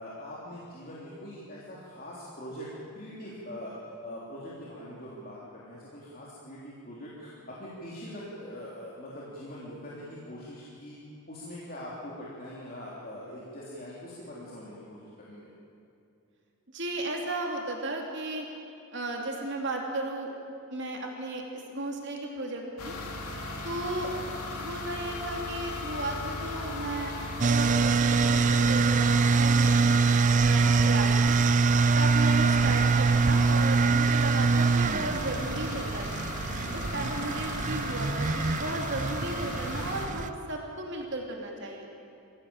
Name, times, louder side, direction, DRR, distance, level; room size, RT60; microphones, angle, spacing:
voice 1, 0.0-2.7 2.9-11.0 11.3-15.5 36.7-37.0, equal, 40° left, -6 dB, 3.3 m, -43 dB
voice 2, 16.7-18.5 18.9-20.3 20.7-22.9 23.6-24.1 24.6-27.1 27.5-30.0 30.4-31.4 32.0-36.2 36.7-41.9, right 2 dB, 50° right, 0 dB, 2.8 m, -35 dB
sound 1, 22.8-40.1, left 2 dB, 90° left, 2.8 m, -37 dB
sound 2, 27.4-40.3, right 4 dB, 35° right, 0.4 m, -24 dB
23.0 x 16.0 x 8.8 m, 2.6 s
head